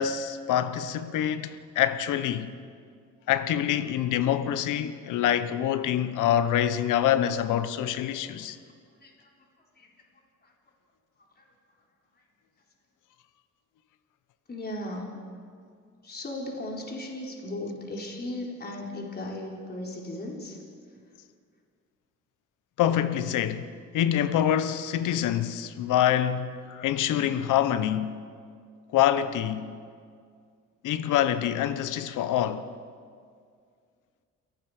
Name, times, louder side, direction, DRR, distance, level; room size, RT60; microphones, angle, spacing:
voice 1, 0.0-2.5 3.3-8.6 22.8-23.7 23.9-28.2 28.9-29.8 30.8-32.7, left 10 dB, 85° left, 1.1 m, -26 dB
voice 2, 9.0-9.3 9.7-9.9 10.4-10.5 11.4-11.5 12.2-12.3 14.5-15.2 16.0-20.6, left 1 dB, 30° left, 4.2 m, -37 dB
29.5 x 18.0 x 5.0 m
cardioid pair, 90°, 30 cm